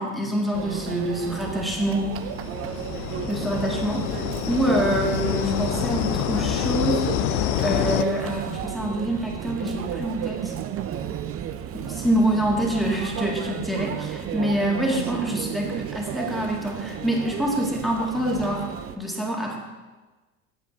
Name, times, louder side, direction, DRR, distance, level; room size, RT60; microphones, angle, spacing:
voice 1, 0.0-2.2 3.3-10.5 11.7-18.7 19.0-19.6, equal, ahead, -2 dB, 2.0 m, -26 dB
Conversation / Chatter / Crowd, 0.5-19.0, right 9 dB, 30° right, 0.6 m, -33 dB
sound 1, 2.1-8.0, left 13 dB, 45° left, 0.5 m, -27 dB
9.2 x 7.4 x 3.9 m, 1.2 s
figure-of-eight pair, 70°, 44 cm